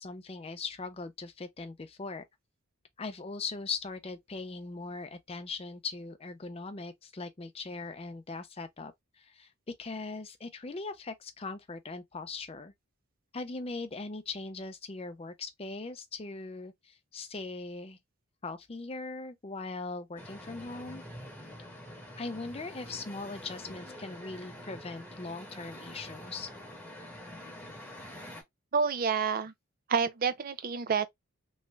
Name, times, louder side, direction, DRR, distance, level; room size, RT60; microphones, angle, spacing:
voice 1, 0.0-2.3 3.0-12.7 13.3-18.0 18.4-21.0 22.2-26.5, left 3 dB, 25° left, 0.5 m, -40 dB
sound 1, 20.2-28.4, equal, 10° left, 0.9 m, -46 dB
voice 2, 28.7-29.5 29.9-31.1, right 6 dB, 40° right, 0.4 m, -28 dB
3.1 x 2.4 x 3.1 m
head